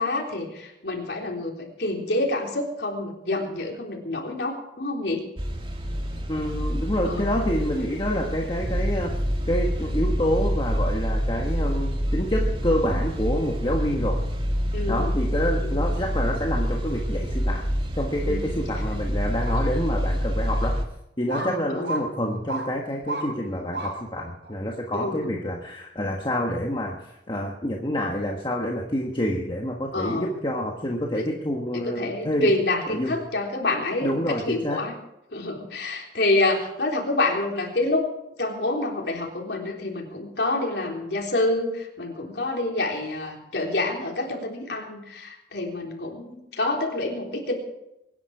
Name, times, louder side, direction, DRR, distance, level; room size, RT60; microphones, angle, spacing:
voice 1, 0.0-5.3 7.0-7.3 8.3-8.4 14.7-15.1 15.6-16.0 18.2-18.5 21.4-22.0 24.9-25.4 29.9-30.4 31.1-31.3 31.7-35.0 35.3-38.1 38.4-47.5, left 2 dB, 70° left, 0 dB, 3.7 m, -27 dB
sound 1, 5.4-20.8, equal, 30° right, 2.2 m, -27 dB
voice 2, 6.3-9.2 9.5-14.2 14.9-17.7 17.9-20.8 21.2-32.5 32.9-33.2 34.0-34.8, equal, 30° left, 0 dB, 1.5 m, -27 dB
sound 2, 19.5-19.6 20.3-20.4 21.3-21.5 21.8-22.0 22.5-22.7 23.1-23.3 23.7-23.9 24.4-24.5, right 2 dB, 80° right, 5.3 m, -31 dB
24.0 x 10.5 x 4.9 m, 0.86 s
head